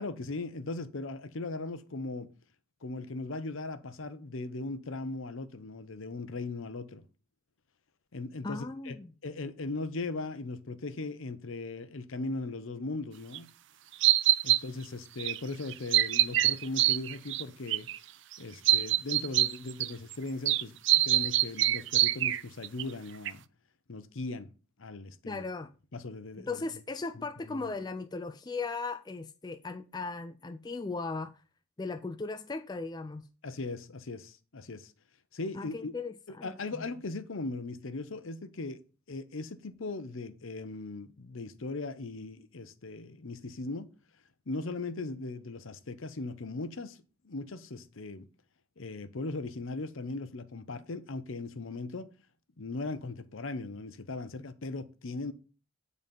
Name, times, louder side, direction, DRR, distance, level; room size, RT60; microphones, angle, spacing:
voice 1, 0.0-2.3 2.8-7.0 8.1-9.0 9.2-13.5 14.4-17.9 18.4-23.4 23.9-24.5 24.8-25.4 25.9-26.7 27.2-27.6 33.4-34.9 35.3-35.9 36.4-38.8 39.1-43.9 44.5-47.0 47.2-48.3 48.8-52.1 52.6-55.3, left 3 dB, 70° left, 0.8 m, -38 dB
voice 2, 8.4-9.1 25.3-25.7 26.3-31.3 31.8-33.2 35.5-36.9, left 3 dB, 20° left, 0.3 m, -37 dB
sound 1, 13.3-13.4 14.0-14.6 15.2-15.4 15.7-17.4 17.7-18.0 18.3-18.4 18.7-20.2 20.5-22.8 23.3-23.4, right 14 dB, 55° right, 0.4 m, -25 dB
9.0 x 4.1 x 5.3 m
head